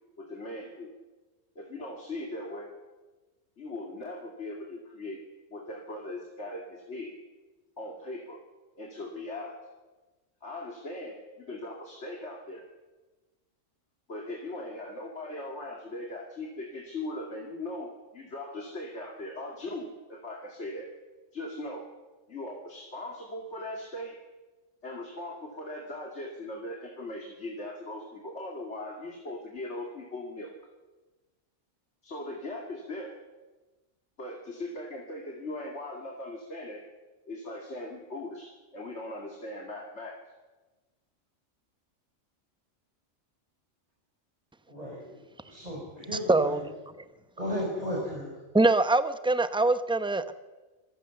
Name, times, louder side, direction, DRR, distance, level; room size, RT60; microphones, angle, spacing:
voice 1, 0.2-0.9 1.6-2.7 3.6-5.2 5.5-7.1 7.8-8.4 8.8-9.6 10.4-12.6 14.1-20.9 21.3-21.9 22.3-24.1 24.8-30.5 32.0-33.1 34.2-36.8 37.3-40.2, left 1 dB, 60° left, 1 dB, 2.7 m, -39 dB
voice 2, 44.7-45.2 45.4-46.7 47.4-48.3, equal, 30° right, -3 dB, 4.9 m, -35 dB
voice 3, 46.3-46.6 48.5-50.3, right 2 dB, 5° right, 11 dB, 0.7 m, -23 dB
26.0 x 16.0 x 7.0 m, 1.2 s
omnidirectional pair, 1.3 m